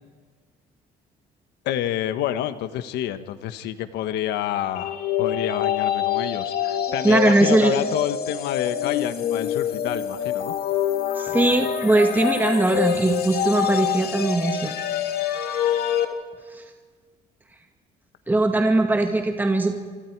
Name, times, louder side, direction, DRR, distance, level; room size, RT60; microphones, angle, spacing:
voice 1, 1.6-10.5, left 11 dB, 80° left, 11 dB, 1.3 m, -28 dB
sound 1, 4.8-16.1, left 10 dB, 65° left, 2.6 m, -26 dB
voice 2, 7.0-7.7 11.2-14.7 16.5-16.6 18.3-19.7, right 2 dB, 10° right, 4 dB, 2.0 m, -20 dB
28.0 x 25.0 x 4.7 m, 1.5 s
cardioid pair, 110°, 17 cm